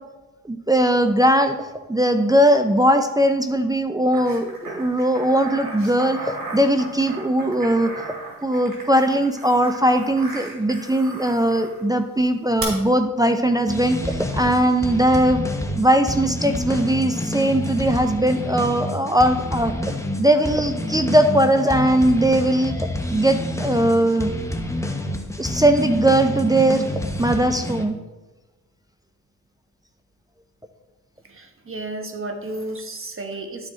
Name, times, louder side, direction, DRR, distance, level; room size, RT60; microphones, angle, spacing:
voice 1, 0.4-1.6 1.9-7.9 8.4-15.4 15.7-19.7 20.2-22.7 23.1-24.3 25.4-26.8 27.2-28.0, right 1 dB, 10° right, 6 dB, 0.6 m, -19 dB
sound 1, 4.1-11.8 12.6-12.7, right 3 dB, 65° right, 2.8 m, -36 dB
sound 2, 13.7-27.9, left 1 dB, 10° left, 1.0 m, -28 dB
voice 2, 31.2-33.7, right 2 dB, 35° right, 4 dB, 1.3 m, -32 dB
12.0 x 4.8 x 3.7 m, 1.1 s
cardioid pair, 65°, 36 cm